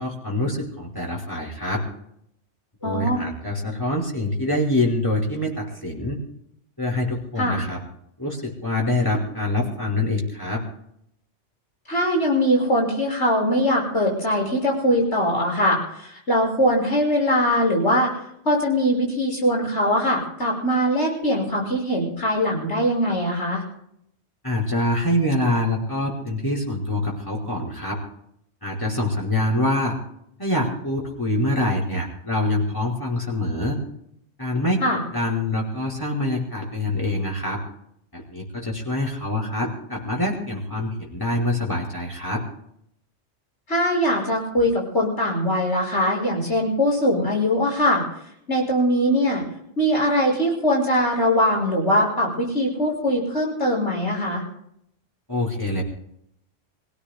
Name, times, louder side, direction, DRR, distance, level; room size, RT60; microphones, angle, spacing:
voice 1, 0.0-1.8 2.8-6.2 6.8-7.8 8.2-10.6 24.4-28.0 28.6-30.0 30.4-33.8 34.4-37.6 38.1-42.4 55.3-55.8, left 1 dB, 15° left, -3 dB, 5.2 m, -25 dB
voice 2, 2.8-3.2 7.4-7.6 11.9-18.1 18.4-23.6 34.8-35.0 43.7-48.0 48.5-49.4 49.8-54.4, equal, 65° left, -1 dB, 6.4 m, -21 dB
29.0 x 17.0 x 2.2 m, 0.75 s
omnidirectional pair, 1.2 m